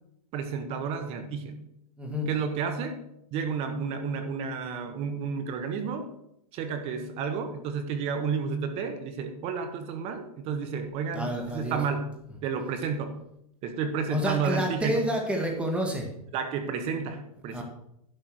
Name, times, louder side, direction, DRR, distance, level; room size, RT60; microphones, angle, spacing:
voice 1, 0.3-1.6 2.3-3.0 3.3-6.1 6.5-12.1 12.4-13.1 13.6-15.1 16.3-17.6, right 5 dB, 30° right, 8 dB, 1.2 m, -31 dB
voice 2, 2.0-2.3 11.1-11.8 14.1-16.1 17.5-17.6, equal, 5° right, 1 dB, 1.9 m, -29 dB
11.0 x 5.5 x 6.3 m, 0.78 s
supercardioid pair, 155°, 19 cm